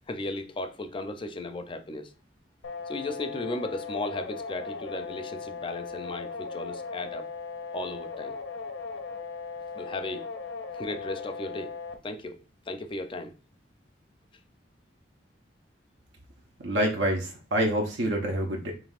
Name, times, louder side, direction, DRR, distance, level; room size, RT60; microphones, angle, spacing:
voice 1, 0.1-2.1 2.9-7.3 7.7-8.4 9.7-10.2 10.7-11.8 12.0-12.4 12.7-13.3, left 2 dB, 30° left, 0.4 m, -35 dB
sound 1, 2.6-12.0, left 4 dB, 80° left, 0.6 m, -38 dB
voice 2, 16.6-18.7, right 1 dB, 85° right, 0.8 m, -27 dB
5.3 x 3.0 x 2.4 m
head